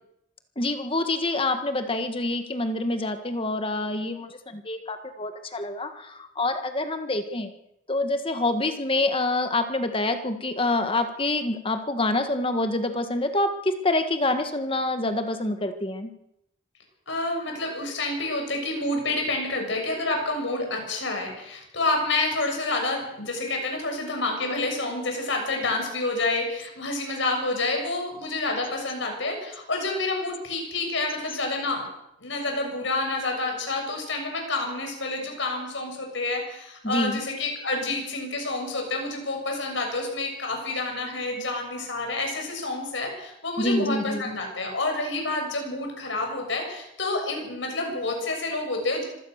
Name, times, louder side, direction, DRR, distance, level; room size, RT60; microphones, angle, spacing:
voice 1, 0.6-7.5 7.9-16.1 36.8-37.2 43.6-44.2, left 2 dB, 25° left, 7 dB, 1.6 m, -26 dB
voice 2, 17.1-31.8 32.2-49.0, left 2 dB, 65° left, 2 dB, 7.0 m, -28 dB
25.5 x 16.0 x 6.6 m, 0.82 s
head